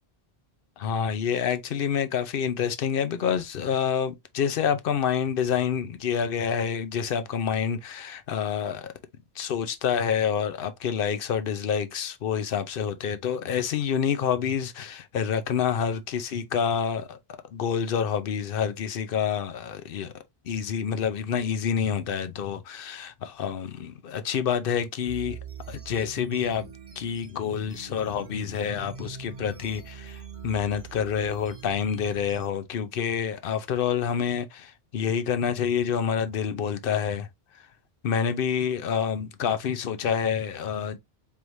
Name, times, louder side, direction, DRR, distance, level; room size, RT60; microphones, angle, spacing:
voice 1, 0.8-8.9 9.3-20.1 20.4-25.4 25.7-37.3 37.5-37.7 38.0-41.0, left 7 dB, 60° left, 0.8 m, -28 dB
sound 1, 25.1-32.5, right 7 dB, 35° right, 0.9 m, -43 dB
4.6 x 3.5 x 2.6 m
omnidirectional pair, 1.1 m